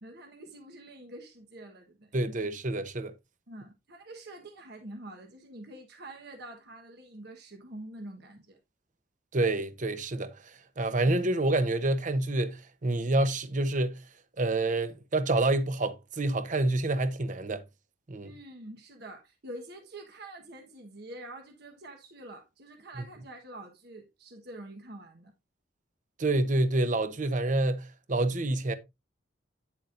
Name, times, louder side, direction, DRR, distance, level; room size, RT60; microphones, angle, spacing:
voice 1, 0.0-2.4 3.5-8.6 18.2-25.3, right 1 dB, 60° right, 1.3 m, -46 dB
voice 2, 2.1-3.1 9.3-14.0 14.4-17.6 18.1-18.3 26.2-28.7, right 2 dB, 45° right, 0.9 m, -28 dB
9.7 x 7.2 x 2.5 m
head